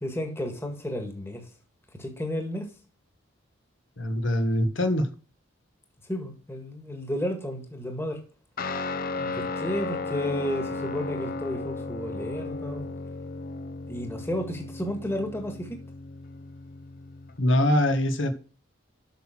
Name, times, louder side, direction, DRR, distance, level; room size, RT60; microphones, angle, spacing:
voice 1, 0.0-1.5 1.9-2.7 6.1-8.2 9.1-12.9 13.9-15.8, left 1 dB, 10° left, 1.8 m, -32 dB
voice 2, 4.0-5.1 17.4-18.3, left 1 dB, 65° left, 1.5 m, -23 dB
Guitar, 8.6-17.4, left 3 dB, 45° left, 0.7 m, -35 dB
8.2 x 6.2 x 6.0 m
head